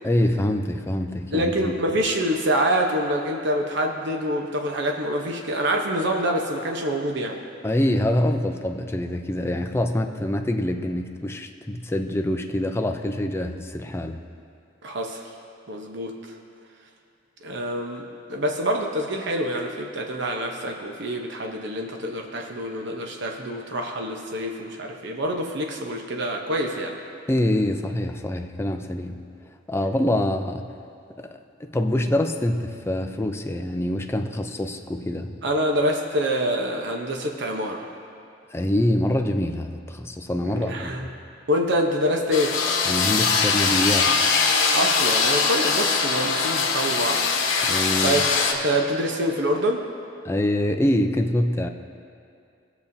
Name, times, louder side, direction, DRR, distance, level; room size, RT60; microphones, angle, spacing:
voice 1, 0.0-1.7 7.6-14.2 27.3-29.2 29.7-30.7 31.2-31.3 31.6-35.4 38.5-41.1 42.9-44.2 47.6-48.2 50.2-51.7, left 1 dB, 15° left, 5 dB, 0.5 m, -25 dB
voice 2, 1.3-7.4 14.8-15.3 15.7-16.1 17.4-27.0 35.4-37.9 40.4-41.1 41.5-42.6 44.7-47.2 48.0-49.8, equal, 65° right, 2 dB, 0.9 m, -26 dB
sound 1, 42.3-48.5, left 5 dB, 80° left, 1.1 m, -22 dB
19.0 x 7.0 x 2.7 m, 2.4 s
head